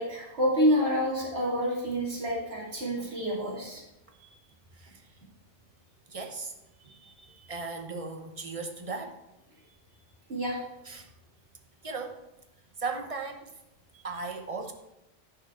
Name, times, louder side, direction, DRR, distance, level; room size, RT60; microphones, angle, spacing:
voice 1, 0.0-3.8 4.2-4.3 6.9-7.5 10.3-10.6 13.9-14.0, equal, 85° right, -4 dB, 2.8 m, -28 dB
voice 2, 4.7-5.2 6.1-6.5 7.5-9.2 10.8-11.1 11.8-12.2 12.8-13.6 14.0-14.7, right 4 dB, 35° right, 4 dB, 1.0 m, -37 dB
10.5 x 6.0 x 4.7 m, 0.92 s
omnidirectional pair, 1.0 m